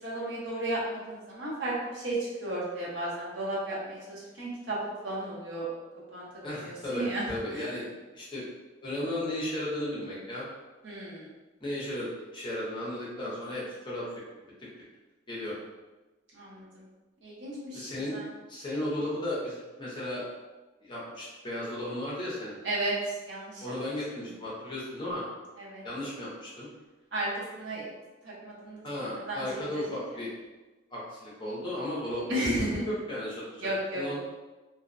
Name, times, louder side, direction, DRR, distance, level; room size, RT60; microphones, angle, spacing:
voice 1, 0.0-4.8 5.0-5.7 6.1-7.2 7.5-7.6 10.8-11.3 16.3-16.8 17.2-18.3 22.6-23.0 23.2-23.6 25.6-25.8 27.1-27.8 28.2-29.4 29.7-29.8 32.3-32.8 33.6-34.0, right 1 dB, 65° right, -6 dB, 0.8 m, -34 dB
voice 2, 6.4-7.8 8.1-8.4 8.8-10.4 11.6-14.1 14.4-14.5 15.3-15.5 17.7-18.2 18.5-20.2 20.8-22.6 23.6-25.3 25.8-26.7 28.8-30.3 30.9-32.3 32.9-33.7 33.9-34.2, left 1 dB, 25° left, -7 dB, 0.6 m, -35 dB
2.6 x 2.1 x 2.4 m, 1.2 s
head